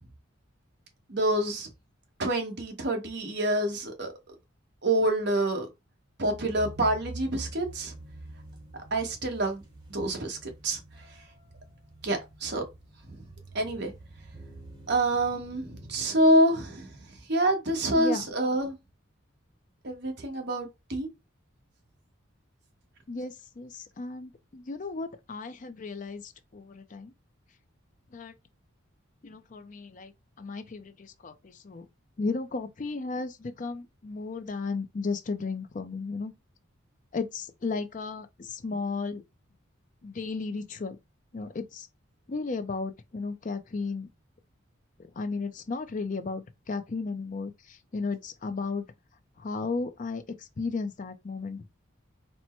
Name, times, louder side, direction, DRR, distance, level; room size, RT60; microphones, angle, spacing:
voice 1, 1.1-1.7 2.2-4.1 4.8-5.7 6.2-7.9 8.9-9.6 9.9-10.8 12.0-12.6 13.1-13.3 13.5-13.9 14.9-16.9 17.3-18.8 19.8-21.1, right 1 dB, 55° right, 1.2 m, -27 dB
sound 1, 6.2-16.0, right 1 dB, 20° right, 1.2 m, -46 dB
voice 2, 17.9-18.3 23.1-27.1 28.1-28.4 29.2-31.9 32.2-36.3 37.1-39.2 40.0-41.0 41.3-41.9 42.3-44.1 45.2-48.8 49.4-51.6, left 4 dB, 40° left, 0.4 m, -34 dB
4.3 x 2.1 x 4.3 m
head